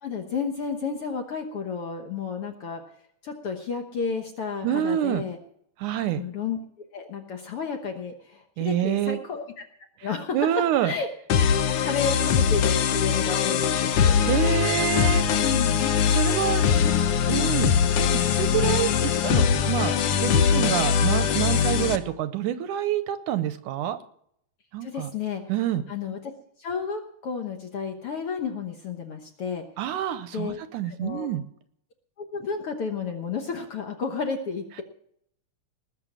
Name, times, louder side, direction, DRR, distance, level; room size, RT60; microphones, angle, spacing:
voice 1, 0.0-2.8 3.2-5.4 6.1-6.6 6.9-9.6 10.0-10.4 10.8-11.1 11.4-14.4 15.4-15.9 16.8-17.0 17.4-17.5 21.6-21.8 24.8-25.4 25.9-26.2 26.6-29.6 30.3-30.6 30.8-31.3 32.2-34.8, left 5 dB, 60° left, 4 dB, 1.6 m, -32 dB
voice 2, 4.6-5.2 5.8-6.2 8.6-9.2 10.3-10.9 14.3-15.3 16.1-16.6 17.3-17.8 18.1-24.0 24.7-25.1 25.5-25.8 29.8-31.4, right 11 dB, 75° right, 12 dB, 2.1 m, -27 dB
sound 1, 11.3-22.0, left 7 dB, 85° left, 1.2 m, -22 dB
20.0 x 6.6 x 7.4 m, 0.69 s
omnidirectional pair, 3.9 m